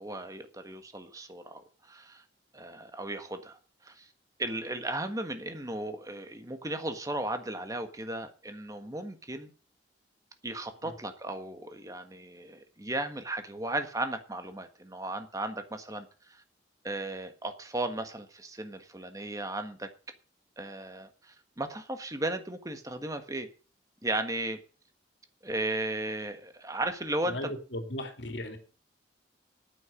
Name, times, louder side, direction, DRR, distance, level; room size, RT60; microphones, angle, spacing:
voice 1, 0.0-2.2 2.5-4.1 4.4-9.5 10.4-16.4 16.8-19.9 20.6-23.5 24.0-24.6 25.4-27.5, right 2 dB, 20° right, 1.5 m, -36 dB
voice 2, 27.3-28.6, left 1 dB, 70° left, 2.6 m, -36 dB
9.2 x 8.9 x 8.4 m
head